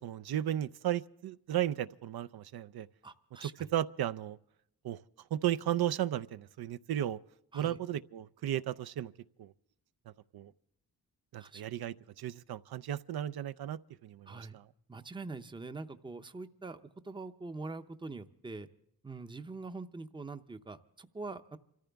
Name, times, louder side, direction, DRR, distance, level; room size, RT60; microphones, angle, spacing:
voice 1, 0.0-2.9 3.4-4.4 4.8-5.0 5.3-7.2 7.5-9.1 9.4-9.5 10.3-10.5 11.3-14.6, right 11 dB, 80° right, 0.5 m, -35 dB
voice 2, 3.0-3.7 7.5-7.8 11.4-11.7 14.3-14.6 14.9-18.7 19.0-21.6, right 3 dB, 15° right, 0.6 m, -44 dB
27.5 x 14.0 x 3.4 m
wide cardioid pair, 145°, 37 cm